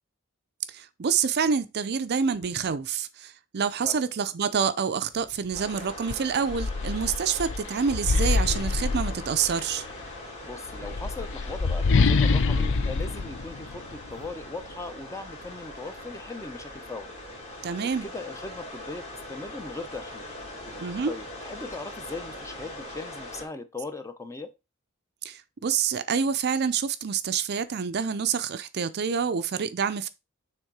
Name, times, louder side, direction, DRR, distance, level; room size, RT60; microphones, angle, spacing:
voice 1, 0.7-9.8 17.6-18.1 20.8-21.1 25.2-30.1, right 6 dB, 50° right, 0.5 m, -27 dB
sound 1, 5.5-5.7 6.1-9.7 10.7-14.3, left 4 dB, 60° left, 0.5 m, -26 dB
sound 2, 5.5-23.5, left 1 dB, 30° left, 2.3 m, -42 dB
voice 2, 10.4-17.2 17.8-20.3 21.1-24.5, left 3 dB, 15° left, 0.7 m, -39 dB
6.4 x 3.7 x 4.7 m
head